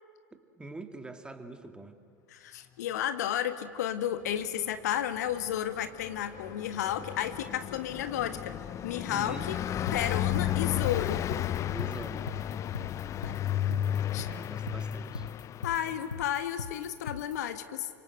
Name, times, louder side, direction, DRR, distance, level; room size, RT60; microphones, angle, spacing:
voice 1, 0.3-2.0 9.1-9.5 11.7-12.3 14.2-15.3, right 2 dB, 10° right, 7 dB, 2.1 m, -44 dB
voice 2, 2.3-8.6 8.8-9.6 9.9-11.3 13.2-13.3 14.1-14.3 15.6-17.9, left 10 dB, 65° left, 10 dB, 1.5 m, -32 dB
Car passing by, 5.3-16.3, left 11 dB, 35° left, 0.6 m, -33 dB
sound 1, 9.9-17.3, left 6 dB, 85° left, 0.7 m, -39 dB
29.0 x 25.5 x 7.9 m, 2.2 s
figure-of-eight pair, 80°, 10 cm